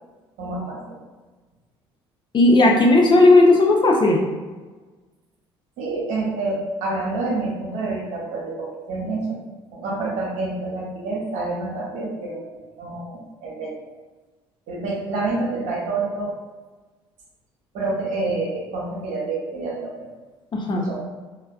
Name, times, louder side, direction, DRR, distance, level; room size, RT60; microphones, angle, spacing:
voice 1, 0.4-1.0 5.8-9.4 9.7-13.8 14.7-16.3 17.7-20.1 20.8-21.0, right 3 dB, 65° right, -3 dB, 0.8 m, -28 dB
voice 2, 2.3-4.2 20.5-20.9, left 2 dB, 35° left, 0 dB, 0.6 m, -15 dB
3.3 x 2.2 x 2.3 m, 1.3 s
hypercardioid pair, 55°, 14 cm